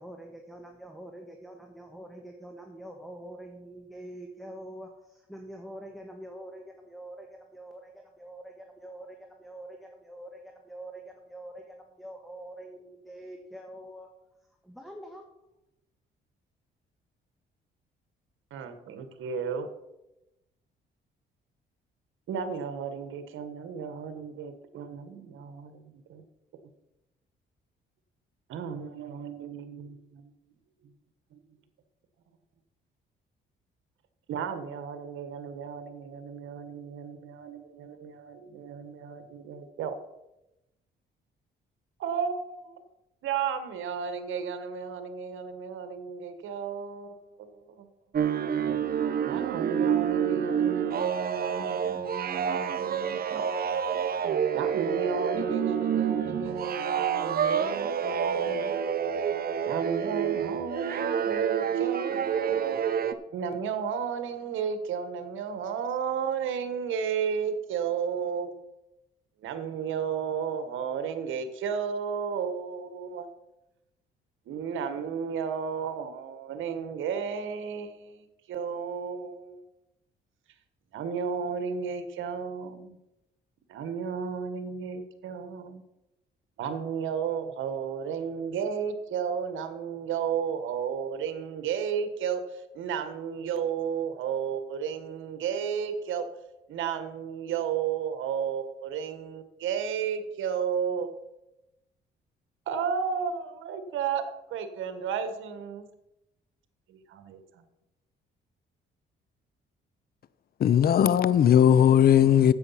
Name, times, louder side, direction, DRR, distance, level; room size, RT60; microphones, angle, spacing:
voice 1, 0.0-14.1 14.6-15.2, right 1 dB, ahead, 1.5 m, -45 dB
voice 2, 18.5-19.7 22.3-26.2 28.5-30.3 31.3-31.4 34.3-39.9 42.0-42.8 43.2-47.9 49.2-53.4 54.5-58.7 59.6-62.8 63.3-68.5 69.4-73.3 74.5-79.6 80.9-83.0 83.7-85.8 86.6-96.3 96.7-101.1 102.7-104.2 104.5-105.8 106.9-107.6, right 7 dB, 80° right, 1.4 m, -33 dB
sound 1, 48.1-63.1, right 8 dB, 50° right, 0.8 m, -28 dB
voice 3, 110.6-112.5, left 9 dB, 50° left, 0.6 m, -18 dB
9.7 x 8.1 x 5.7 m
cardioid pair, 90°, 20 cm